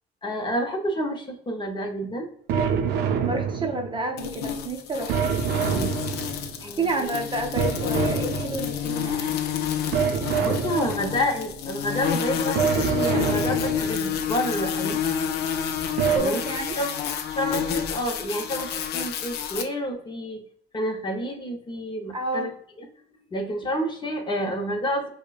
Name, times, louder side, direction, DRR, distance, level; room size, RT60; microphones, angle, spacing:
voice 1, 0.2-2.3 5.7-6.0 6.6-7.1 10.4-15.0 16.0-16.4 16.8-16.9 17.3-20.4 20.7-22.5 22.8-22.9 23.3-25.1, equal, 25° left, 2 dB, 0.8 m, -29 dB
sound 1, 2.5-4.1 5.1-6.6 7.6-8.9 9.9-11.3 12.6-14.1 16.0-16.2, right 7 dB, 80° right, 0.5 m, -26 dB
voice 2, 3.0-5.2 6.6-9.3 16.1-16.8 22.1-22.5, right 2 dB, 30° right, 3 dB, 0.5 m, -29 dB
sound 2, 4.2-19.6, left 8 dB, 75° left, 0.5 m, -29 dB
4.9 x 2.1 x 2.3 m, 0.63 s
cardioid pair, 110°, 17 cm